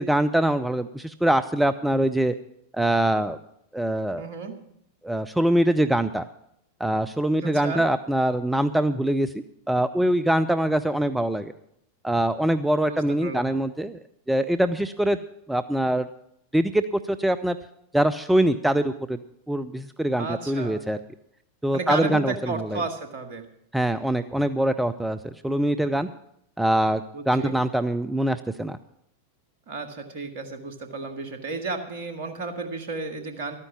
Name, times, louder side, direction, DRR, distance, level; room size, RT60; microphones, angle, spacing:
voice 1, 0.0-2.3 2.7-3.4 3.7-4.3 5.0-6.2 6.8-9.3 9.7-11.5 12.0-14.0 14.3-15.2 15.5-16.1 16.5-17.6 17.9-21.0 21.6-22.8 23.7-26.1 26.6-28.8, right 1 dB, 5° right, 11 dB, 0.5 m, -23 dB
voice 2, 4.2-4.6 7.4-7.8 12.8-13.5 20.2-20.9 21.7-23.5 27.1-27.6 29.7-33.5, right 3 dB, 50° right, 6 dB, 1.9 m, -33 dB
12.5 x 9.7 x 7.2 m, 0.74 s
figure-of-eight pair, 90°, 0 cm